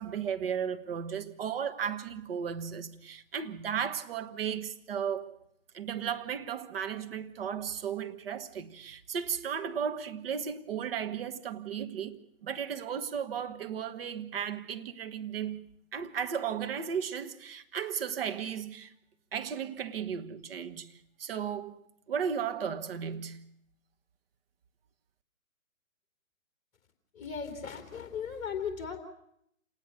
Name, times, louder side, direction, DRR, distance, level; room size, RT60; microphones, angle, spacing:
voice 1, 0.0-5.4 5.7-18.9 19.3-21.8 22.1-23.5, right 7 dB, 45° right, 1.5 m, -35 dB
voice 2, 27.1-29.0, left 6 dB, 15° left, 3.6 m, -37 dB
28.0 x 19.5 x 6.8 m
figure-of-eight pair, 140°, 41 cm